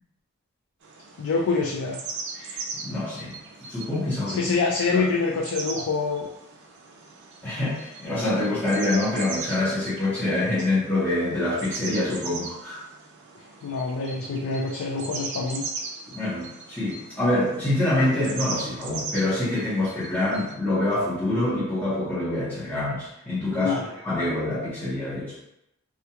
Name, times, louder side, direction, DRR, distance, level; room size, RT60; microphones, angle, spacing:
sound 1, 0.8-20.6, right 4 dB, 50° right, 0.3 m, -39 dB
voice 1, 1.2-2.0 4.3-6.3 13.6-15.6 23.5-23.9, left 4 dB, 70° left, -1 dB, 0.3 m, -26 dB
voice 2, 2.4-3.4 3.7-4.5 4.9-5.0 7.4-12.8 16.1-23.8 24.0-25.3, left 2 dB, 10° left, -13 dB, 0.7 m, -26 dB
2.2 x 2.2 x 2.8 m, 0.84 s
head